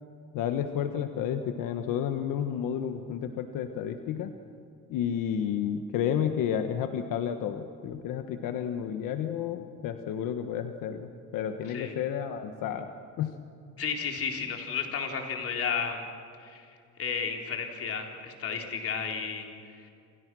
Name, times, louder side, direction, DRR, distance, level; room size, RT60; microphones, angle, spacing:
voice 1, 0.3-4.3 4.9-12.9 13.2-13.3, left 9 dB, 85° left, 7 dB, 1.4 m, -31 dB
voice 2, 13.8-16.0 16.4-16.7 17.0-19.5 19.8-19.9, left 6 dB, 45° left, 2 dB, 4.1 m, -32 dB
29.0 x 28.0 x 6.3 m, 2.5 s
cardioid pair, 130°, 31 cm